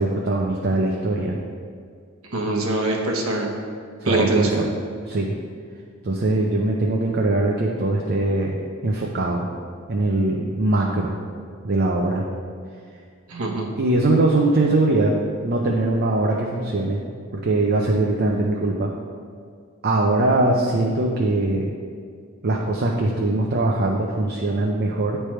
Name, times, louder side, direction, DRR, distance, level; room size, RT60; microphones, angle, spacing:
voice 1, 0.0-1.4 4.0-4.7 5.1-5.3 6.0-8.6 8.8-9.5 9.9-11.1 11.6-12.2 13.8-17.0 17.3-18.9 19.8-21.7 22.4-25.2, right 2 dB, 50° right, -1 dB, 0.5 m, -21 dB
voice 2, 2.3-3.5 4.0-4.7 13.3-13.7, right 2 dB, 85° right, 0 dB, 1.0 m, -23 dB
9.9 x 3.3 x 4.4 m, 2.1 s
head